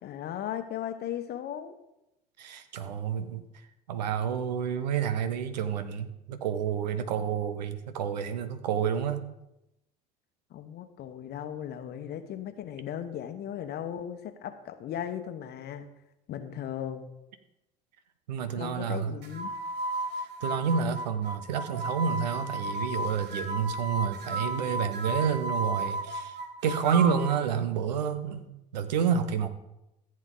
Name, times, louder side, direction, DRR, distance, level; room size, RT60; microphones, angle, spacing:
voice 1, 0.0-1.8 10.5-15.9 16.3-17.1 18.5-19.5, left 10 dB, 50° left, 1.0 m, -37 dB
voice 2, 2.4-3.4 3.9-9.2 18.3-19.1 20.2-26.4 26.6-29.5, right 7 dB, 80° right, 0.9 m, -29 dB
sound 1, 19.2-27.4, right 2 dB, 55° right, 1.5 m, -34 dB
14.5 x 7.7 x 3.9 m
hypercardioid pair, 65°, 21 cm